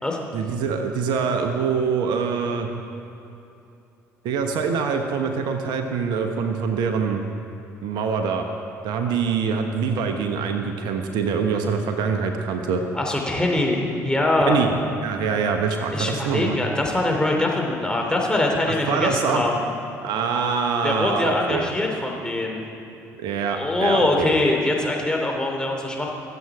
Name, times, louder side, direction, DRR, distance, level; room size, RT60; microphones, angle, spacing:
voice 1, 0.3-2.7 4.2-7.2 7.8-8.4 8.8-12.8 14.4-14.7 15.0-16.6 18.7-19.4 20.0-21.6 23.2-24.3, right 5 dB, 65° right, 5 dB, 1.1 m, -24 dB
voice 2, 12.9-14.6 15.9-19.7 20.8-22.6 23.5-26.1, left 2 dB, 10° left, 0 dB, 3.1 m, -23 dB
23.5 x 8.0 x 4.9 m, 2.7 s
hypercardioid pair, 55°, 8 cm